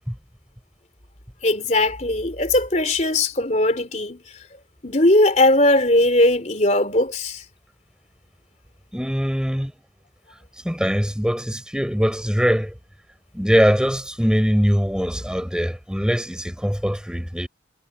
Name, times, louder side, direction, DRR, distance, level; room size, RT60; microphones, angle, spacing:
voice 1, 1.4-4.2 4.8-7.4, left 1 dB, 40° left, 3.7 m, -19 dB
voice 2, 8.9-9.7 10.6-12.7 13.3-17.5, equal, 5° right, 6.2 m, -22 dB
head